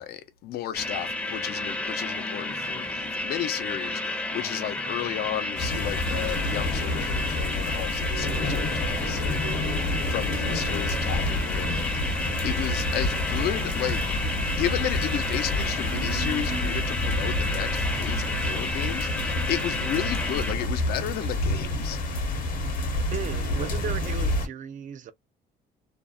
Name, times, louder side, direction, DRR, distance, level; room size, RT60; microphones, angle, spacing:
voice 1, 0.0-14.0 14.5-22.0, left 11 dB, 70° left, 0.6 m, -33 dB
sound 1, 0.7-20.6, left 2 dB, 10° left, 0.6 m, -31 dB
sound 2, 5.6-24.5, left 1 dB, 55° left, 0.9 m, -29 dB
sound 3, 8.0-23.4, right 8 dB, 80° right, 0.8 m, -45 dB
voice 2, 23.1-25.1, right 9 dB, 50° right, 0.4 m, -35 dB
2.5 x 2.0 x 2.3 m
cardioid pair, 110°, 17 cm